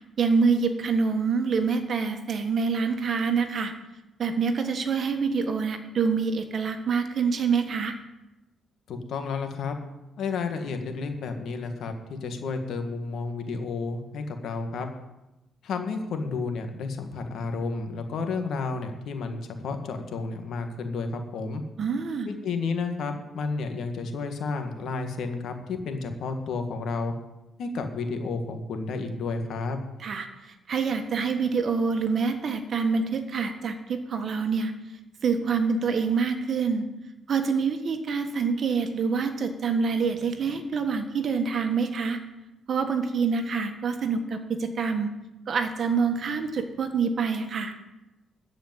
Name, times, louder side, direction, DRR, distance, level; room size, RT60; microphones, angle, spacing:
voice 1, 0.2-3.7 4.2-8.0 21.8-22.4 30.0-34.7 35.2-36.9 37.3-42.2 42.7-45.1 45.5-47.8, right 5 dB, 50° right, 7 dB, 1.5 m, -26 dB
voice 2, 8.9-9.7 10.2-14.9 15.6-21.6 22.3-27.1 27.6-29.8, left 4 dB, 70° left, 6 dB, 1.6 m, -31 dB
13.5 x 5.1 x 9.2 m, 0.99 s
cardioid pair, 110°, 0 cm